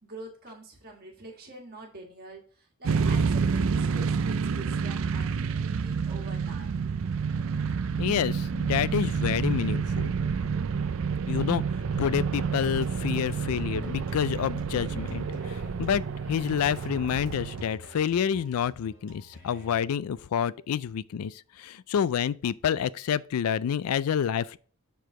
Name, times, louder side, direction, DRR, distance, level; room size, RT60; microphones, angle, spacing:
voice 1, 0.0-6.8, right 2 dB, 45° right, 1.5 m, -45 dB
sound 1, 2.8-17.6, right 5 dB, 65° right, 0.4 m, -29 dB
voice 2, 8.0-10.1 11.3-11.6 12.0-16.0 16.3-24.6, left 8 dB, 80° left, 0.3 m, -28 dB
sound 2, 11.8-19.8, left 1 dB, 65° left, 2.8 m, -51 dB
7.0 x 4.7 x 3.7 m
head